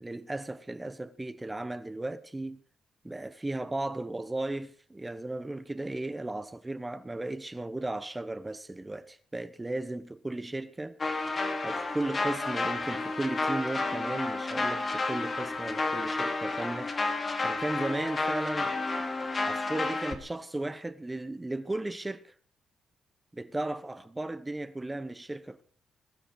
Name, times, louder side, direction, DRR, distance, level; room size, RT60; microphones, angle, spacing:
voice 1, 0.0-2.6 3.0-11.0 11.6-16.9 17.4-18.8 19.4-22.3 23.3-25.6, right 2 dB, 10° right, 1.2 m, -35 dB
sound 1, 11.0-20.2, left 3 dB, 25° left, 2.5 m, -31 dB
21.5 x 13.5 x 4.8 m
cardioid pair, 150°, 0 cm